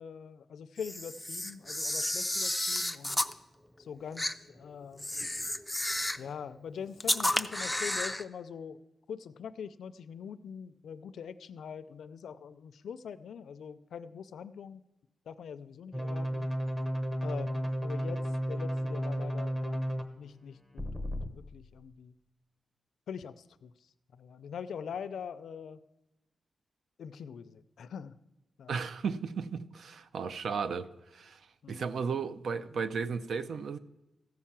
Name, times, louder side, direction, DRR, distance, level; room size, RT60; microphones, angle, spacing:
voice 1, 0.0-3.2 3.8-5.1 6.2-8.8 9.1-14.8 15.3-16.5 17.2-22.2 23.1-25.8 27.0-28.1 28.6-28.9 31.6-31.8, left 7 dB, 85° left, 0.5 m, -43 dB
Camera, 0.8-3.3 4.2-4.3 5.0-6.3 7.0-8.2, left 1 dB, 5° left, 0.4 m, -32 dB
sound 1, 15.9-20.0 20.8-21.3, equal, 10° right, 0.9 m, -33 dB
voice 2, 28.7-31.4 31.7-33.8, right 5 dB, 65° right, 0.6 m, -35 dB
14.5 x 5.6 x 7.4 m
wide cardioid pair, 155°, 0 cm